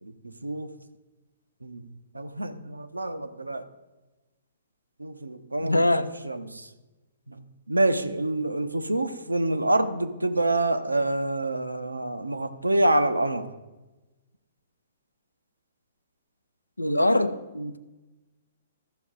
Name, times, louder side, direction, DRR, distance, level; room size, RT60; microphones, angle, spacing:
voice 1, 0.0-0.7 1.6-3.7 5.0-5.8 6.2-6.7 7.3-13.5, right 2 dB, 85° right, 10 dB, 0.7 m, -27 dB
voice 2, 5.6-6.2 16.8-17.8, left 1 dB, 85° left, 13 dB, 0.6 m, -23 dB
14.0 x 6.0 x 3.8 m, 1.1 s
figure-of-eight pair, 120°, 0 cm